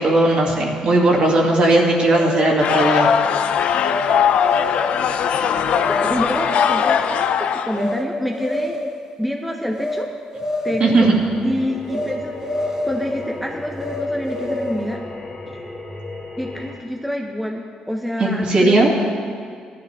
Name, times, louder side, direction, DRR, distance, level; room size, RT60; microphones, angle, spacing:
voice 1, 0.0-3.1 10.8-11.1 18.2-18.9, right 2 dB, 50° right, -2 dB, 2.5 m, -17 dB
sound 1, 2.1-3.2 3.8-4.1 4.4-5.0 5.8-6.0 6.4-6.9 7.7-8.0 8.3-9.0 9.7-10.0 10.3-11.0 11.9-12.1 12.4-13.2 13.8-14.8, left 2 dB, 25° right, 1.5 m, -27 dB
sound 2, 2.6-7.9, left 8 dB, 70° left, 0.6 m, -19 dB
voice 2, 6.0-7.3 7.6-8.8 9.2-10.1 10.6-11.1 11.4-15.0 16.4-19.1, equal, ahead, 0 dB, 0.8 m, -27 dB
sound 3, 10.9-16.8, left 2 dB, 30° left, 2.3 m, -35 dB
17.0 x 12.0 x 3.6 m, 2.1 s
cardioid pair, 125°, 2 cm